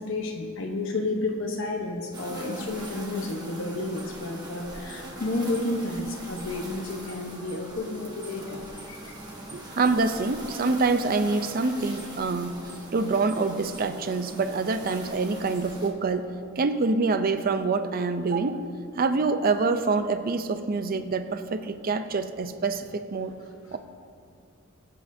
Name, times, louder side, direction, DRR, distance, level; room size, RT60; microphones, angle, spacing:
voice 1, 0.0-9.1, left 2 dB, 70° left, 1 dB, 1.0 m, -31 dB
sound 1, 2.1-15.9, right 1 dB, 20° right, 1.3 m, -41 dB
voice 2, 9.5-12.6 12.9-16.3 16.6-18.6 19.0-23.3 23.7-23.8, right 3 dB, 45° right, 9 dB, 0.5 m, -26 dB
21.5 x 8.3 x 2.7 m, 2.4 s
head